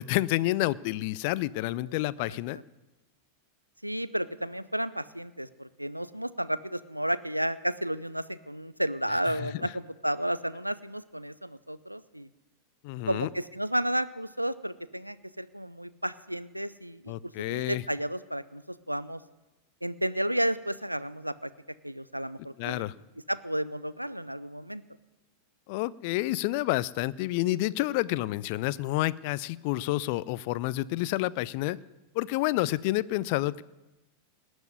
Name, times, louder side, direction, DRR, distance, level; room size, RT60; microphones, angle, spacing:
voice 1, 0.0-2.6 9.4-9.5 12.8-13.3 17.1-17.8 22.6-22.9 25.7-31.8 32.1-33.6, left 17 dB, 45° left, 20 dB, 0.4 m, -29 dB
voice 2, 2.2-2.6 3.8-12.3 13.1-19.2 19.8-21.5 21.8-22.8 23.3-24.8, equal, 90° right, 16 dB, 0.5 m, -32 dB
18.5 x 6.2 x 9.5 m, 1.1 s
figure-of-eight pair, 90°, 0 cm